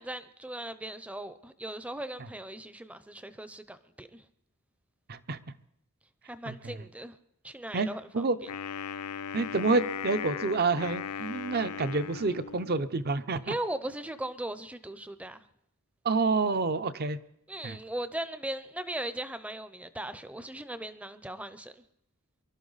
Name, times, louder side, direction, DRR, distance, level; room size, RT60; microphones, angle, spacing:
voice 1, 0.0-4.2 6.3-7.2 7.4-8.3 13.4-15.4 17.5-21.8, right 1 dB, 5° right, 12 dB, 0.6 m, -38 dB
voice 2, 6.5-6.8 7.7-7.9 8.1-8.4 9.3-13.5 16.0-17.2 17.6-17.8, right 3 dB, 45° right, 12 dB, 0.6 m, -28 dB
Wind instrument woodwind instrument, 8.5-12.9, left 7 dB, 85° left, 0.5 m, -38 dB
23.5 x 12.0 x 4.0 m, 0.78 s
head